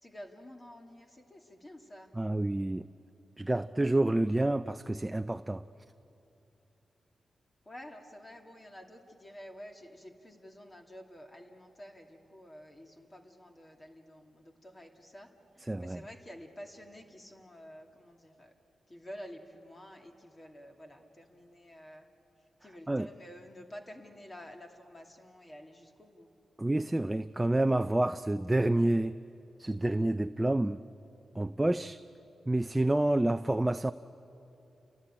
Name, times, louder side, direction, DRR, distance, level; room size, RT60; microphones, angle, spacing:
voice 1, 0.0-2.1 7.6-15.3 15.6-18.5 18.9-22.1 22.6-26.3, equal, 30° left, 2.5 m, -50 dB
voice 2, 2.2-2.9 3.4-5.6 15.7-16.0 22.9-23.1 26.6-29.2 29.6-30.8 31.3-32.0 32.5-33.9, right 1 dB, 15° right, 0.5 m, -28 dB
29.5 x 17.5 x 8.8 m
cardioid pair, 60°, 0 cm